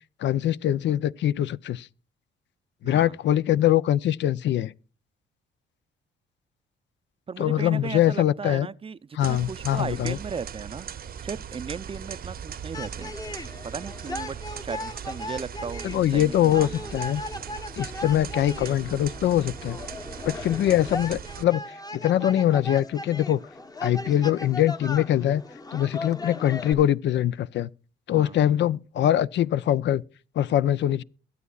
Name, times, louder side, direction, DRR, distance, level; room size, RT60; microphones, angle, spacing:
voice 1, 0.2-1.9 2.8-4.7 7.4-8.7 9.1-10.2 15.8-17.2 17.8-19.8 20.3-23.4 23.8-25.4 25.7-27.7 28.1-30.0 30.4-31.0, left 12 dB, 65° left, 0.5 m, -23 dB
voice 2, 2.8-3.2 7.3-10.9 11.2-13.1 13.6-17.0 28.1-28.4, right 5 dB, 30° right, 0.5 m, -36 dB
sound 1, 9.2-21.4, right 8 dB, 50° right, 0.8 m, -39 dB
sound 2, 12.7-26.7, left 2 dB, 20° left, 0.9 m, -38 dB
22.5 x 8.3 x 2.3 m
cardioid pair, 90°, 20 cm